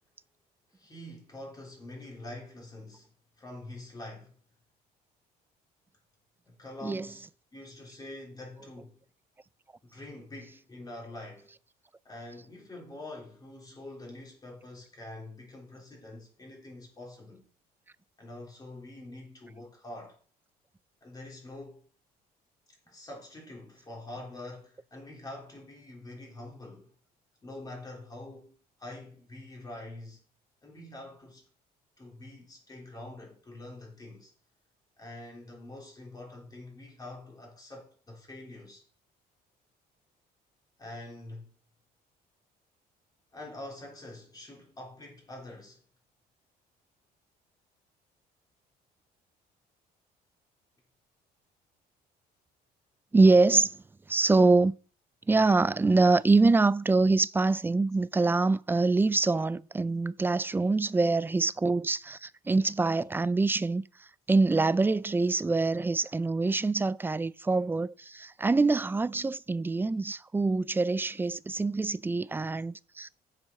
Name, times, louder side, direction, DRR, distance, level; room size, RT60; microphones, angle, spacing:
voice 1, 0.7-4.4 6.4-9.0 9.9-11.5 12.0-17.5 18.2-20.2 21.0-21.9 22.9-26.9 27.4-30.2 30.6-31.4 32.0-34.3 35.0-38.9 40.8-41.6 43.3-45.8, left 1 dB, 25° left, 3.5 m, -45 dB
voice 2, 53.1-53.8 54.1-54.7 55.3-73.1, right 3 dB, 10° right, 0.4 m, -25 dB
7.5 x 7.4 x 5.5 m
cardioid pair, 110°, 17 cm